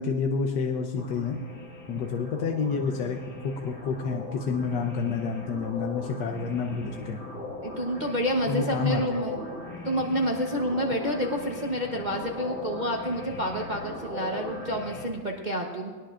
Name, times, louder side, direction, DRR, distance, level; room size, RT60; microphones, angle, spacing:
voice 1, 0.0-1.4 1.9-7.2 8.5-9.0, left 5 dB, 65° left, 3 dB, 1.3 m, -29 dB
sound 1, 1.0-15.1, left 3 dB, 45° left, 2.2 m, -39 dB
voice 2, 7.6-9.4 9.8-15.9, equal, 35° right, 0 dB, 0.7 m, -29 dB
21.5 x 19.0 x 2.5 m, 1.5 s
omnidirectional pair, 2.3 m